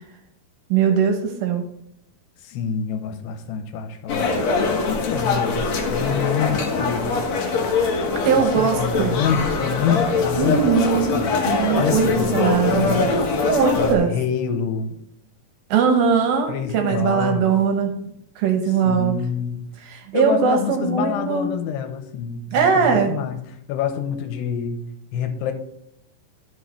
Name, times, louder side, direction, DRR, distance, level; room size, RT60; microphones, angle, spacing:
voice 1, 0.7-1.6 8.2-9.2 10.4-11.2 11.5-12.9 13.5-14.1 15.7-18.0 18.4-19.2 19.9-21.5 22.5-23.2, right 6 dB, 75° right, 4 dB, 2.4 m, -20 dB
voice 2, 2.4-4.3 4.6-7.2 8.6-10.6 10.9-11.5 11.8-13.1 13.7-15.0 16.5-17.5 18.1-18.2 18.8-19.7 20.1-23.4 23.7-24.8 25.1-25.5, left 7 dB, 90° left, 7 dB, 2.8 m, -27 dB
sound 1, 4.1-14.0, left 4 dB, 65° left, 1.7 m, -22 dB
13.0 x 5.9 x 3.2 m, 0.73 s
omnidirectional pair, 4.8 m